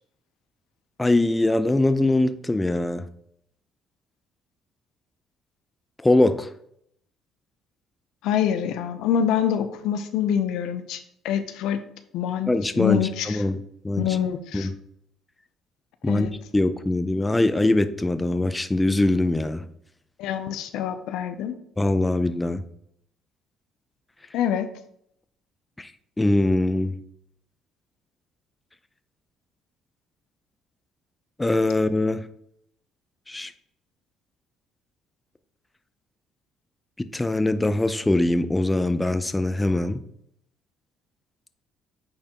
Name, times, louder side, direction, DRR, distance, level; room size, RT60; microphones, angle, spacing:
voice 1, 1.0-3.1 6.0-6.5 12.5-13.6 13.8-14.2 14.5-14.7 16.0-16.3 16.5-19.7 21.8-22.6 25.8-25.9 26.2-27.0 31.4-32.3 33.3-33.5 37.0-40.0, left 2 dB, 15° left, 11 dB, 0.5 m, -22 dB
voice 2, 8.2-11.0 11.2-11.8 12.1-12.5 12.8-13.4 14.0-14.7 16.1-16.3 20.2-21.6 24.3-24.7, left 9 dB, 80° left, 9 dB, 0.6 m, -25 dB
8.7 x 4.3 x 3.0 m, 0.71 s
supercardioid pair, 65°, 0 cm